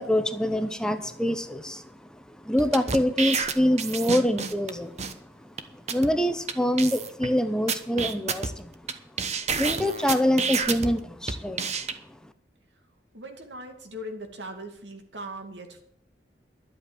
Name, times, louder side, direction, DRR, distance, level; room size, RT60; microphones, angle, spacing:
voice 1, 0.0-8.7 9.5-11.7 12.2-12.3, equal, 5° left, 9 dB, 0.8 m, -26 dB
sound 1, 2.6-4.7 5.0-5.1 5.6-5.7 5.9-6.1 6.5-6.6 6.8-7.3 7.7-8.9 9.2-10.9 11.3-11.9, right 5 dB, 40° right, 1.1 m, -29 dB
voice 2, 13.1-15.8, right 1 dB, 80° right, 5 dB, 2.4 m, -39 dB
11.5 x 8.3 x 8.6 m, 0.69 s
head